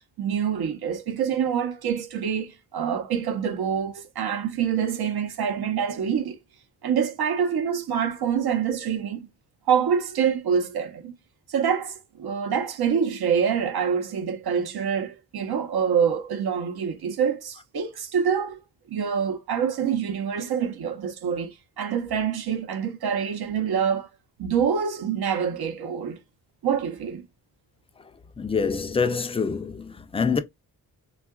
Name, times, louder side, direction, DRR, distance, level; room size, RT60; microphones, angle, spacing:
voice 1, 0.2-6.4 6.8-9.3 9.7-11.1 11.5-18.6 18.9-24.1 24.4-26.2 26.6-27.2, right 7 dB, 80° right, 0.7 m, -26 dB
voice 2, 28.4-30.4, left 5 dB, 15° left, 0.3 m, -25 dB
3.5 x 2.4 x 2.3 m
cardioid pair, 90°, 37 cm